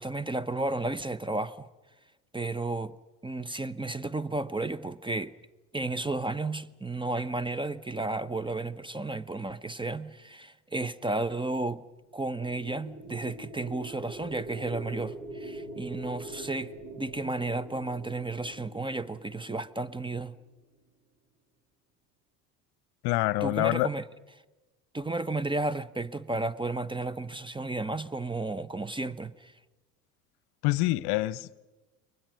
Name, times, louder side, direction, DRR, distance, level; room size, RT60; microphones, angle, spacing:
voice 1, 0.0-1.7 2.3-3.0 3.2-5.3 5.7-11.8 12.1-20.3 23.4-24.0 24.9-29.5, right 2 dB, 10° right, 0.9 m, -33 dB
sound 1, 12.2-20.3, right 1 dB, 40° right, 5.4 m, -44 dB
voice 2, 23.0-23.9 30.6-31.6, left 19 dB, 55° left, 0.9 m, -26 dB
29.5 x 23.0 x 6.4 m
hypercardioid pair, 70°, 47 cm